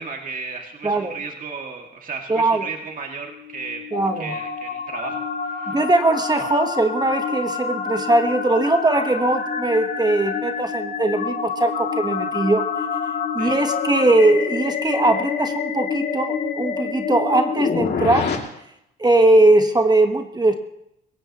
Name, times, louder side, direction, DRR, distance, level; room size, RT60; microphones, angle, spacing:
voice 1, 0.0-3.8 4.2-5.8 13.4-13.6, right 4 dB, 45° right, 2 dB, 2.2 m, -34 dB
voice 2, 0.8-1.2 2.3-2.7 3.9-4.4 5.7-12.7 13.3-18.3 19.0-20.5, right 2 dB, 20° right, 6 dB, 1.2 m, -20 dB
sound 1, 3.3-18.4, left 5 dB, 55° left, 2.5 m, -27 dB
26.5 x 16.0 x 3.0 m, 0.80 s
cardioid pair, 90°, 20 cm